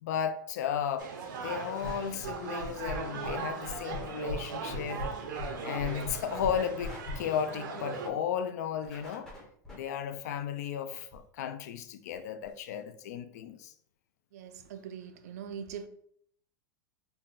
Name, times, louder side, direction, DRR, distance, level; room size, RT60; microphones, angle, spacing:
voice 1, 0.0-5.1 5.6-9.3 9.7-13.7, left 8 dB, 55° left, 0.4 m, -34 dB
sound 1, 1.0-8.1, right 5 dB, 90° right, 0.7 m, -39 dB
sound 2, 1.8-2.3 2.6-3.4 3.6-4.4 4.7-7.2, left 2 dB, 30° left, 0.9 m, -38 dB
sound 3, 4.6-4.7 5.0-5.1 5.7-6.0 6.3-7.0 8.8-9.8 11.1-11.2 11.8-11.9 12.1-12.2 12.4-12.5, left 1 dB, 5° left, 0.6 m, -48 dB
voice 2, 14.3-15.9, right 7 dB, 55° right, 0.4 m, -42 dB
3.9 x 2.2 x 3.7 m
supercardioid pair, 180°, 10 cm